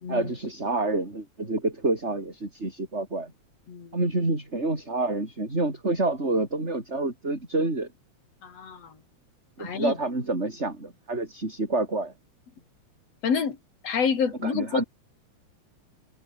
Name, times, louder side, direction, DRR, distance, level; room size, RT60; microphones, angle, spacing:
voice 1, 0.1-3.3 3.9-7.9 9.6-12.1 14.4-14.8, right 2 dB, 20° right, 5.5 m, -28 dB
voice 2, 8.4-9.0 9.6-9.9 13.2-13.6 13.8-14.8, left 6 dB, 60° left, 4.4 m, -28 dB
omnidirectional pair, 3.3 m